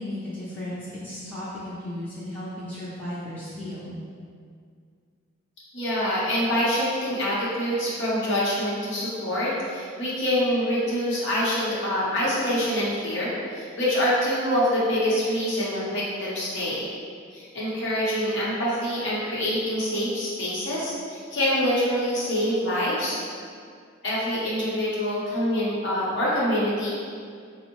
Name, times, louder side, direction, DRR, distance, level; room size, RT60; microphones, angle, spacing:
voice 1, 0.0-3.9, left 1 dB, 10° left, -11 dB, 0.5 m, -35 dB
voice 2, 5.7-16.9 17.3-23.2 24.0-26.9, equal, 65° left, -7 dB, 0.8 m, -25 dB
4.2 x 2.0 x 3.0 m, 2.2 s
head